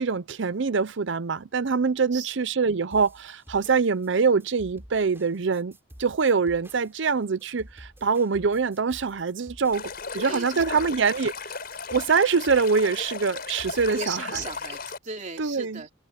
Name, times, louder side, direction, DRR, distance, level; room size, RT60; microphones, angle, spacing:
voice 1, 0.0-5.7 6.0-11.3 11.9-14.4 15.4-15.8, right 5 dB, 65° right, 0.6 m, -24 dB
sound 1, 2.9-14.8, equal, 15° right, 3.3 m, -50 dB
Stream, 9.7-15.0, left 5 dB, 50° left, 5.2 m, -36 dB
voice 2, 10.1-10.6 13.9-15.9, right 4 dB, 40° right, 3.2 m, -36 dB
open air
head